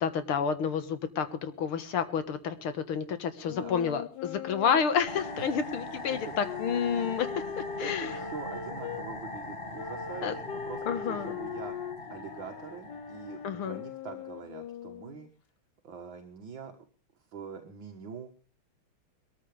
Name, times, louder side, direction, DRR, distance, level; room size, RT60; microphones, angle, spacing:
voice 1, 0.0-8.2 10.2-10.4 10.9-11.4 13.4-13.8, left 7 dB, 80° left, 10 dB, 2.3 m, -30 dB
sound 1, 3.4-9.0 9.7-15.3, left 7 dB, 60° left, 1.5 m, -41 dB
sound 2, 5.1-13.9, left 2 dB, 25° left, 2.3 m, -41 dB
voice 2, 7.8-11.7 12.1-15.3 15.8-16.9 17.3-18.3, right 6 dB, 65° right, 4 dB, 2.1 m, -44 dB
21.5 x 14.0 x 3.4 m, 0.35 s
omnidirectional pair, 2.4 m